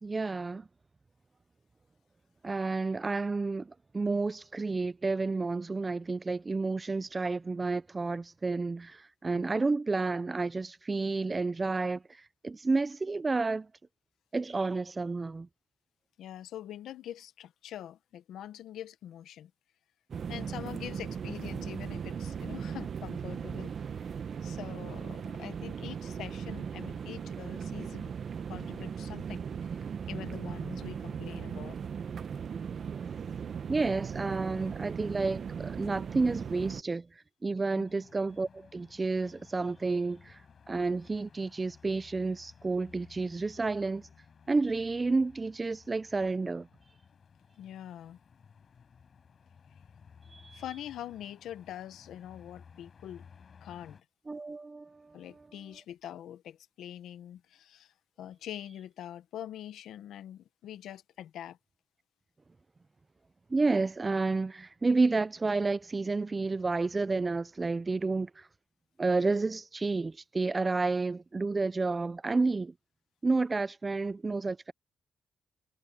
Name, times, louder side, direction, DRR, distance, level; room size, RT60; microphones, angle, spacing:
voice 1, 0.0-0.7 2.4-12.0 12.4-13.7 14.3-15.5 33.7-37.1 37.4-40.4 40.7-44.1 44.5-46.7 50.3-50.6 54.3-55.2 63.5-68.5 69.0-72.7 73.2-74.7, right 3 dB, 30° right, 0.6 m, -30 dB
voice 2, 16.2-19.5 20.3-24.0 24.4-28.1 28.5-29.4 29.8-31.8 37.7-37.8 47.6-48.2 50.5-53.3 53.6-54.0 55.1-61.6, left 11 dB, 80° left, 1.3 m, -44 dB
sound 1, 20.1-36.8, right 7 dB, 55° right, 1.2 m, -38 dB
sound 2, 37.8-54.0, left 6 dB, 50° left, 5.1 m, -57 dB
cardioid pair, 70°, 0 cm